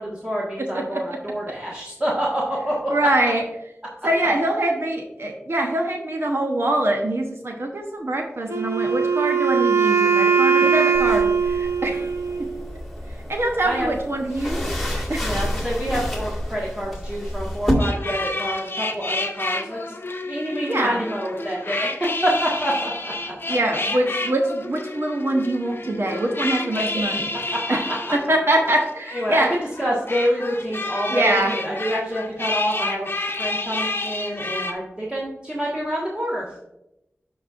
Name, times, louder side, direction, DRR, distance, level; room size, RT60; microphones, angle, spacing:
voice 1, 0.0-2.9 13.6-13.9 15.2-19.9 20.3-23.5 27.9-28.1 29.1-29.4 29.8-33.1 33.4-36.5, equal, 20° right, -6 dB, 1.5 m, -27 dB
voice 2, 2.9-3.4 4.0-12.1 12.4-12.5 13.3-15.3 20.7-21.0 23.5-27.3 27.7-27.8 28.1-29.5 31.1-31.5, right 1 dB, 60° right, 2 dB, 1.0 m, -24 dB
Wind instrument woodwind instrument, 8.5-12.5, right 6 dB, 90° right, 0.8 m, -20 dB
sound 1, 10.9-17.7, equal, 5° left, 1.9 m, -30 dB
sound 2, 17.8-34.7, left 2 dB, 50° left, 0.7 m, -30 dB
12.5 x 4.2 x 2.5 m, 0.87 s
wide cardioid pair, 65°, 5 cm